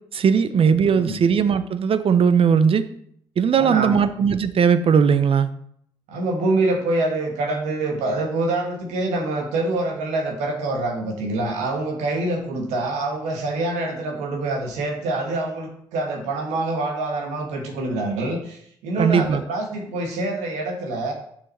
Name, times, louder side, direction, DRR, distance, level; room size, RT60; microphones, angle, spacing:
voice 1, 0.1-2.9 3.4-5.5 19.0-19.4, right 6 dB, 50° right, 12 dB, 0.7 m, -18 dB
voice 2, 0.9-1.2 3.5-4.1 6.1-21.1, right 2 dB, 80° right, 2 dB, 1.5 m, -25 dB
6.5 x 6.3 x 4.3 m, 0.67 s
hypercardioid pair, 45°, 12 cm